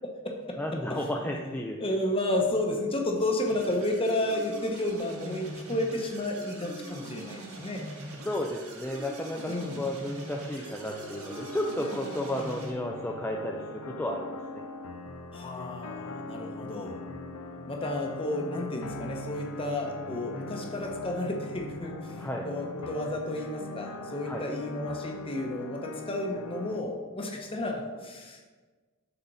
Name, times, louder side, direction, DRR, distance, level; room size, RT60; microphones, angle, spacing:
voice 1, 0.0-0.6 0.9-1.0 1.4-1.5 1.8-7.8 9.4-9.9 15.3-17.0 17.7-28.5, left 1 dB, 25° left, 1 dB, 0.9 m, -32 dB
voice 2, 0.6-1.8 8.1-14.3 14.5-14.6 22.2-22.5 24.2-24.5, left 1 dB, 10° left, 0 dB, 0.4 m, -33 dB
sound 1, 3.5-12.7, right 2 dB, 85° right, 1.6 m, -43 dB
sound 2, 10.9-26.8, left 2 dB, 80° left, 0.6 m, -41 dB
7.0 x 4.1 x 5.4 m, 1.3 s
head